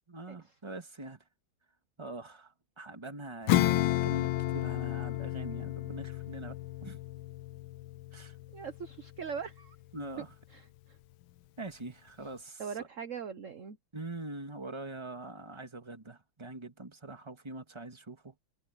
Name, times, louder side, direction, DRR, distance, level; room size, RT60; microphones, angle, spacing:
voice 1, 0.1-1.2 2.0-7.0 8.1-8.4 9.9-10.3 11.6-12.9 13.9-18.3, right 2 dB, 15° right, 1.8 m, -44 dB
Acoustic guitar / Strum, 3.5-9.5, left 15 dB, 80° left, 1.4 m, -32 dB
voice 2, 8.5-9.8 10.5-10.6 12.6-13.8, right 6 dB, 45° right, 1.2 m, -40 dB
omnidirectional pair, 2.2 m